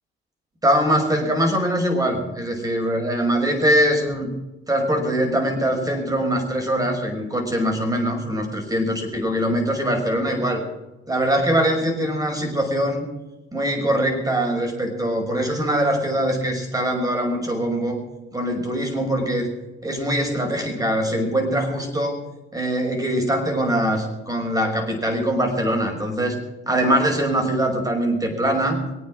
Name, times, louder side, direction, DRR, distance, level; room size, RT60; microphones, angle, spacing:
voice 1, 0.6-4.3 4.7-10.6 11.1-13.0 13.5-18.0 18.3-19.5 19.8-22.2 22.5-26.4 26.7-28.8, right 1 dB, 20° right, 4 dB, 5.7 m, -22 dB
23.5 x 9.1 x 6.3 m, 1.0 s
cardioid pair, 90°, 20 cm